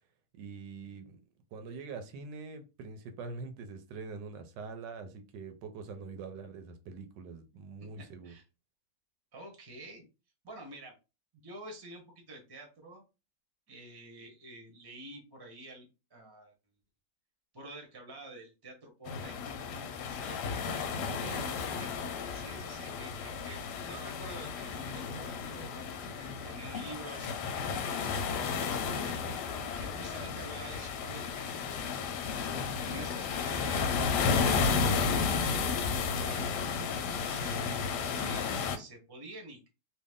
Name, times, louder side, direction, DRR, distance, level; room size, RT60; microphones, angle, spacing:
voice 1, 0.3-1.2 1.5-8.3 20.9-21.4, right 4 dB, 80° right, 8 dB, 1.2 m, -44 dB
voice 2, 7.8-8.4 9.3-10.1 10.4-10.9 11.3-13.0 13.7-16.5 17.5-19.4 20.0-20.4 21.2-21.9 22.3-27.4 28.0-31.6 32.8-35.2 35.9-39.7, right 2 dB, 20° right, 2 dB, 0.7 m, -49 dB
sound 1, 19.1-38.8, left 5 dB, 75° left, 1.1 m, -33 dB
3.1 x 2.4 x 3.5 m, 0.29 s
omnidirectional pair, 2.0 m